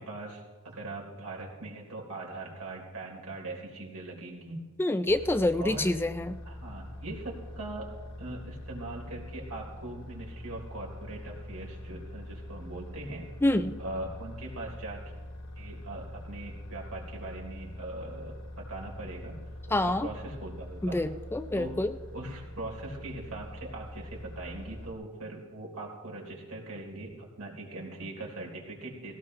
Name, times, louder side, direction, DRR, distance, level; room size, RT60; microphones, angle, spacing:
voice 1, 0.0-4.7 5.6-5.9 6.4-7.9 8.2-13.3 13.8-15.0 15.6-19.4 19.7-21.0 21.5-21.8 22.1-29.2, right 2 dB, 85° right, -2 dB, 3.9 m, -41 dB
voice 2, 4.8-6.4 13.4-13.8 19.7-20.1 20.8-21.9, left 1 dB, 10° left, 9 dB, 0.4 m, -27 dB
sound 1, 5.1-24.9, left 1 dB, 85° left, 3.0 m, -44 dB
18.5 x 17.0 x 3.2 m, 1.3 s
head